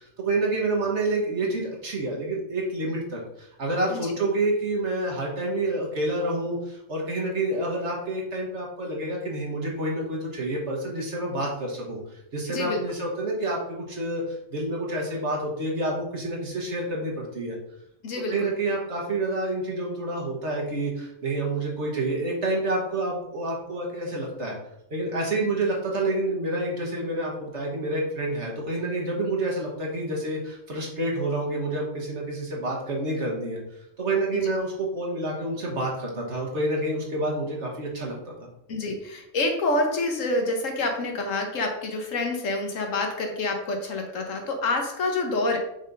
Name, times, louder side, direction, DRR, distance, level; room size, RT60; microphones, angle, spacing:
voice 1, 0.0-17.6 18.3-24.6 24.9-33.6 34.0-38.3, right 2 dB, 65° right, -2 dB, 1.7 m, -28 dB
voice 2, 12.5-12.8 18.0-18.5 34.3-34.5 38.7-45.6, left 2 dB, 85° left, 3 dB, 1.6 m, -27 dB
5.8 x 4.2 x 5.3 m, 0.81 s
omnidirectional pair, 1.3 m